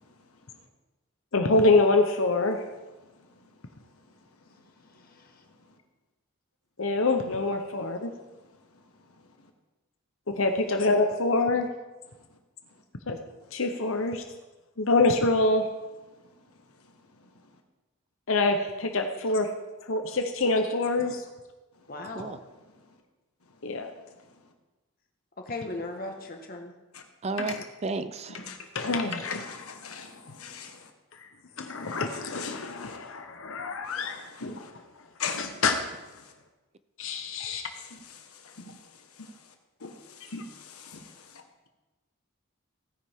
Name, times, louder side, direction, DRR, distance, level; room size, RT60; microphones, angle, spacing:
voice 1, 1.3-2.6 6.8-8.1 10.3-11.7 13.1-13.2 13.5-14.2 14.8-15.7 18.3-19.5 19.9-21.2 23.6-23.9 27.4-27.6 28.7-29.4 31.1-31.3 31.6-34.3 35.4-35.8 37.0-37.7, left 3 dB, 65° left, 5 dB, 0.9 m, -25 dB
voice 2, 5.0-5.4 21.9-22.4 25.4-26.7, left 2 dB, 40° left, 3 dB, 1.5 m, -38 dB
voice 3, 27.2-28.4, right 3 dB, 30° right, 12 dB, 0.4 m, -32 dB
voice 4, 28.4-28.9 29.2-30.9 31.7-33.0 33.8-34.7 35.2-35.6 36.2-36.3 37.8-39.4 39.8-41.4, left 5 dB, 80° left, 4 dB, 1.5 m, -41 dB
16.5 x 9.9 x 3.6 m, 1.1 s
head